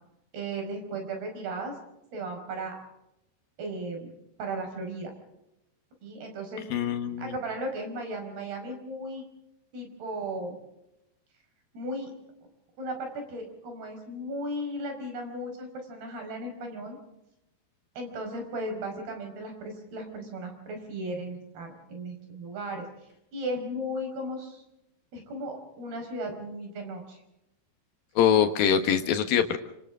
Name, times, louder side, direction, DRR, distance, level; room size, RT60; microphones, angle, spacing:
voice 1, 0.3-1.7 2.1-2.8 3.6-4.1 4.4-5.1 6.0-9.3 9.7-10.6 11.7-12.1 12.8-17.0 18.0-22.8 23.3-24.6 25.1-27.2, right 1 dB, 50° right, 4 dB, 6.9 m, -36 dB
voice 2, 6.7-7.3 28.2-29.6, left 8 dB, 70° left, 7 dB, 2.3 m, -23 dB
28.0 x 26.0 x 3.7 m, 0.85 s
omnidirectional pair, 5.9 m